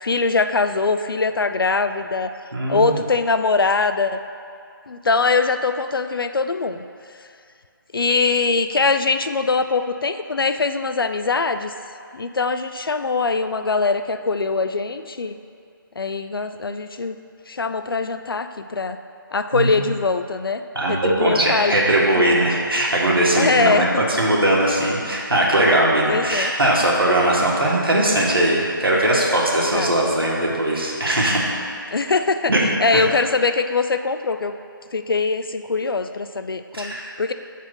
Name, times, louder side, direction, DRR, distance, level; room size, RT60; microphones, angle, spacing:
voice 1, 0.0-2.3 2.7-4.2 4.9-6.8 7.9-11.7 12.1-15.4 16.0-17.2 17.5-19.0 19.3-20.6 20.9-21.9 23.3-24.0 26.1-26.5 29.7-29.9 31.9-32.5 32.8-34.5 34.9-37.3, left 4 dB, 80° left, 9 dB, 0.4 m, -22 dB
voice 2, 2.5-3.0 19.5-19.9 20.7-31.4 32.5-32.6 32.9-33.1 36.7-37.1, right 1 dB, 85° right, -4 dB, 1.6 m, -19 dB
6.2 x 4.1 x 6.1 m, 2.4 s
figure-of-eight pair, 150°, 12 cm